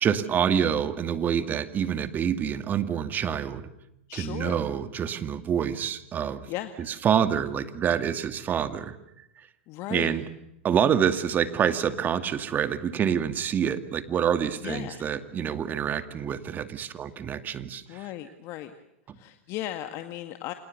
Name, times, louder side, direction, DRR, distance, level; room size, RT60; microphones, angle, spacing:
voice 1, 0.0-3.7 4.1-6.5 6.9-9.0 9.9-10.3 10.6-18.1 19.1-19.2, right 8 dB, 25° right, 11 dB, 2.3 m, -27 dB
voice 2, 4.1-4.6 6.5-6.7 9.7-10.1 14.6-15.0 17.9-18.7 19.1-20.5, left 14 dB, 45° left, 8 dB, 2.0 m, -36 dB
28.5 x 27.5 x 6.9 m, 0.84 s
hypercardioid pair, 115°, 7 cm